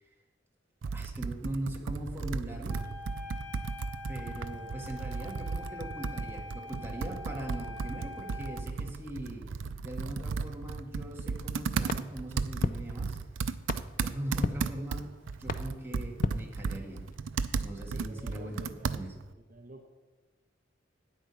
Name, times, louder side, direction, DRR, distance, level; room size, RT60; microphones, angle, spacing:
Computer keyboard, 0.8-19.3, right 4 dB, 90° right, 0.5 m, -35 dB
voice 1, 0.9-2.8 4.1-9.5 9.8-13.2 14.0-15.1 15.4-17.1 17.6-19.1, right 1 dB, 10° right, -1 dB, 1.7 m, -40 dB
Wind instrument woodwind instrument, 2.7-8.6, left 2 dB, 10° left, 1.5 m, -44 dB
sound 1, 11.9-17.2, left 3 dB, 45° left, 0.4 m, -37 dB
voice 2, 17.8-19.1 19.5-19.9, right 1 dB, 45° right, 2 dB, 1.0 m, -49 dB
9.2 x 8.3 x 5.6 m, 1.2 s
head